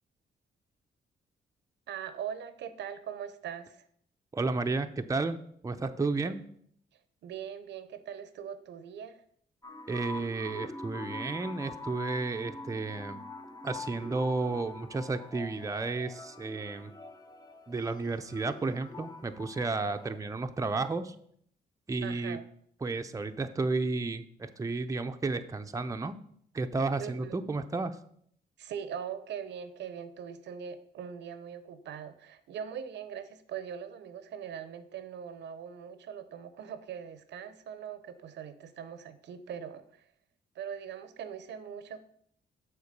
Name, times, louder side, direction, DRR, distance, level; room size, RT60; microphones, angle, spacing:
voice 1, 1.9-3.8 7.2-9.2 22.0-22.4 27.0-27.4 28.6-40.0 40.6-42.0, right 8 dB, 80° right, 12 dB, 0.7 m, -41 dB
voice 2, 4.3-6.4 9.9-13.2 13.6-16.9 17.7-21.1 21.9-22.4 22.8-26.2 26.5-28.0, right 3 dB, 20° right, 7 dB, 0.6 m, -32 dB
sound 1, 9.6-20.2, left 2 dB, 20° left, 0.8 m, -44 dB
6.8 x 4.4 x 6.7 m, 0.65 s
cardioid pair, 85°, 18 cm